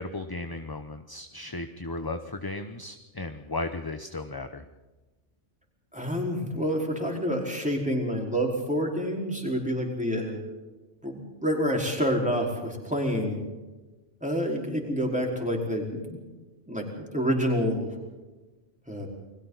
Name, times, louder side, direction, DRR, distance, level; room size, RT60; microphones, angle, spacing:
voice 1, 0.0-4.6, left 2 dB, 20° left, 7 dB, 0.9 m, -35 dB
voice 2, 5.9-10.4 11.0-13.4 14.2-16.0 16.7-17.9 18.9-19.1, equal, 5° right, -1 dB, 4.8 m, -28 dB
30.0 x 22.0 x 4.1 m, 1.2 s
omnidirectional pair, 1.2 m